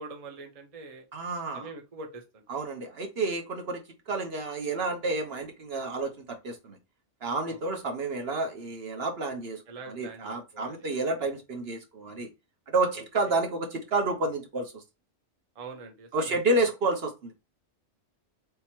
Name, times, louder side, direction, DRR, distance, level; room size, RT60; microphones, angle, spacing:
voice 1, 0.0-1.0 1.5-2.4 7.5-7.6 9.7-10.8 12.9-13.4 15.5-16.4, right 3 dB, 35° right, 0.7 m, -44 dB
voice 2, 1.1-1.7 2.5-6.8 7.2-9.6 9.9-12.3 12.7-14.8 16.1-17.3, right 2 dB, 60° right, 1.0 m, -30 dB
3.4 x 2.9 x 4.3 m
omnidirectional pair, 1.3 m